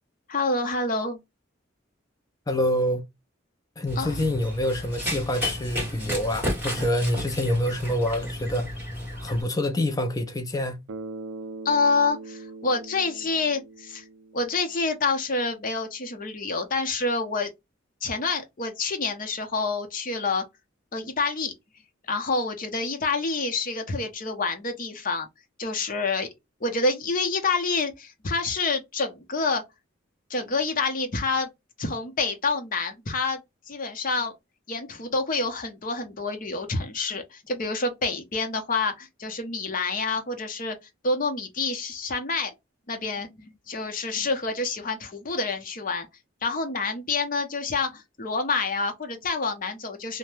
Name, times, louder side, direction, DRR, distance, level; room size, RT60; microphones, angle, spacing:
voice 1, 0.3-1.2 4.0-4.2 11.6-14.0 14.3-17.5 18.0-20.4 20.9-21.5 22.1-25.3 25.6-26.3 26.6-29.6 30.3-31.5 31.8-33.4 33.7-34.3 34.7-40.8 41.0-42.5 42.9-46.1 46.4-50.2, left 3 dB, 40° left, 0.7 m, -27 dB
voice 2, 2.5-3.0 3.8-8.7 9.2-10.8, left 1 dB, 20° left, 0.4 m, -26 dB
Run, 3.9-9.4, equal, 10° right, 1.6 m, -32 dB
Bass guitar, 10.9-14.9, right 3 dB, 80° right, 0.4 m, -41 dB
2.7 x 2.1 x 3.2 m
head